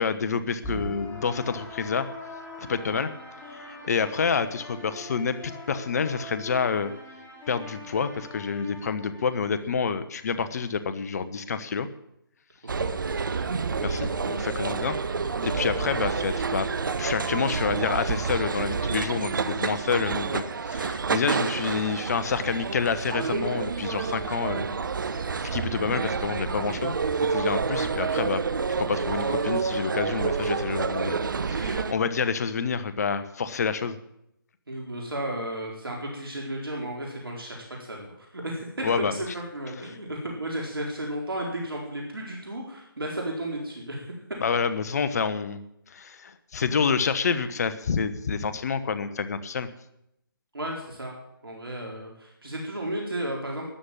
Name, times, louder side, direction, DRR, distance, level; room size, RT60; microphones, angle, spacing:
voice 1, 0.0-2.1 2.7-3.1 3.5-6.9 7.5-11.9 13.8-15.0 15.4-16.7 17.0-24.6 25.4-28.4 28.7-31.2 31.5-34.0 38.8-39.1 44.4-45.6 45.9-49.7, left 5 dB, 45° left, 12 dB, 1.2 m, -28 dB
sound 1, 0.6-9.6, left 1 dB, 10° left, 4.2 m, -41 dB
voice 2, 12.6-13.5 27.7-27.9 34.7-44.1 50.5-51.1 51.4-53.7, right 1 dB, 80° right, -1 dB, 4.2 m, -34 dB
sound 2, 12.7-31.9, right 5 dB, 60° right, 1.0 m, -28 dB
13.0 x 9.8 x 8.7 m, 0.81 s
figure-of-eight pair, 150°, 12 cm